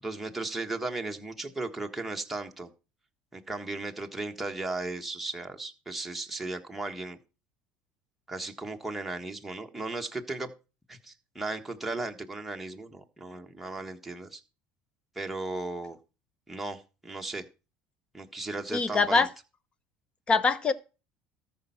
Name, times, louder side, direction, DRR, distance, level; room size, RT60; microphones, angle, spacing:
voice 1, 0.0-2.7 3.3-7.2 8.3-10.5 10.9-14.4 15.1-16.0 16.5-17.4 18.1-19.3, right 2 dB, 5° right, 1.5 m, -36 dB
voice 2, 18.7-19.3 20.3-20.7, left 4 dB, 25° left, 1.0 m, -23 dB
13.5 x 5.5 x 5.7 m
supercardioid pair, 115°, 4 cm